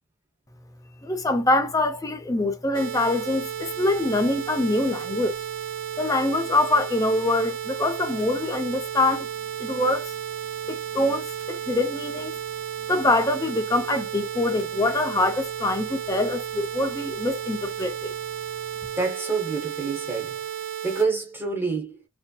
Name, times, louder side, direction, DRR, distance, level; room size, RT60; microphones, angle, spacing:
voice 1, 1.0-5.4 6.0-9.3 9.6-10.1 10.7-12.4 12.9-18.1, left 2 dB, 15° left, 0.5 m, -24 dB
sound 1, 2.7-21.0, right 10 dB, 60° right, 0.7 m, -33 dB
voice 2, 19.0-20.4 20.8-22.0, right 4 dB, 10° right, 0.8 m, -27 dB
3.1 x 2.7 x 2.2 m
head